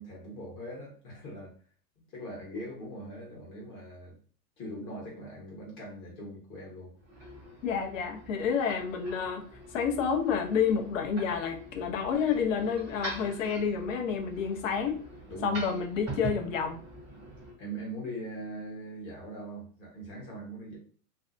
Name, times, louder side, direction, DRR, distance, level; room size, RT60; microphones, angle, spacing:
voice 1, 0.0-1.5 2.1-4.2 4.6-6.9 15.3-15.6 17.6-20.8, right 1 dB, 25° left, -3 dB, 1.1 m, -41 dB
sound 1, 6.9-17.5, right 1 dB, 5° right, 0.3 m, -44 dB
voice 2, 7.6-9.4 9.7-15.0 15.4-16.8, left 6 dB, 55° left, 4 dB, 0.6 m, -29 dB
2.6 x 2.1 x 2.4 m, 0.42 s
hypercardioid pair, 150°, 47 cm